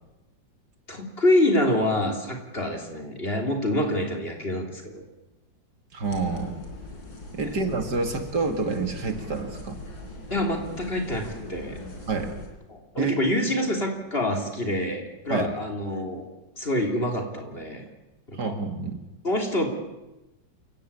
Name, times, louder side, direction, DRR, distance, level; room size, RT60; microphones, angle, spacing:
voice 1, 0.9-5.1 7.4-7.5 10.3-11.8 12.7-16.2 16.6-17.9 18.3-18.5 19.2-19.7, left 1 dB, 30° left, 3 dB, 3.5 m, -26 dB
voice 2, 5.9-6.6 7.3-9.8 12.1-12.4 13.0-13.2 15.3-15.5 18.3-19.0, right 4 dB, 60° right, 6 dB, 2.8 m, -28 dB
sound 1, 6.0-12.5, left 1 dB, 80° left, 5.0 m, -40 dB
28.0 x 15.5 x 8.7 m, 1.0 s
omnidirectional pair, 2.0 m